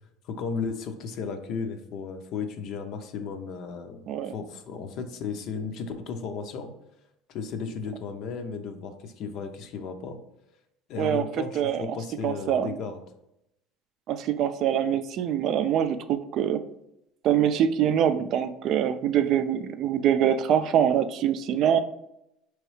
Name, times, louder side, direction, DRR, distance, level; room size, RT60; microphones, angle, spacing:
voice 1, 0.2-4.0 4.3-6.7 7.3-10.2 10.9-13.0, left 5 dB, 60° left, 7 dB, 0.6 m, -34 dB
voice 2, 11.0-12.0 12.2-12.8 14.1-16.6 17.2-21.8, right 9 dB, 55° right, 11 dB, 0.3 m, -24 dB
4.6 x 3.0 x 3.1 m, 0.84 s
supercardioid pair, 100°, 0 cm